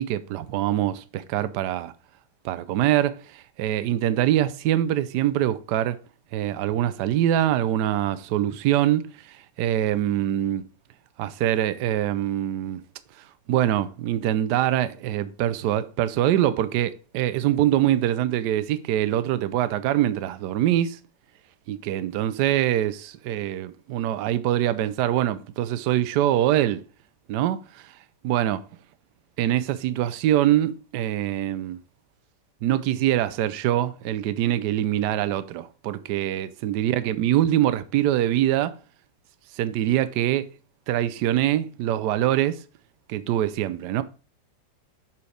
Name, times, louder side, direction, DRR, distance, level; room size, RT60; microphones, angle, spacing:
voice 1, 0.0-1.9 2.4-6.0 6.3-10.7 11.2-12.8 13.5-21.0 21.7-26.8 27.3-27.9 28.2-28.6 29.4-31.8 32.6-38.8 39.5-40.5 40.9-42.6 43.1-44.0, right 12 dB, 70° right, 1.1 m, -24 dB
6.9 x 4.5 x 4.9 m
omnidirectional pair, 2.0 m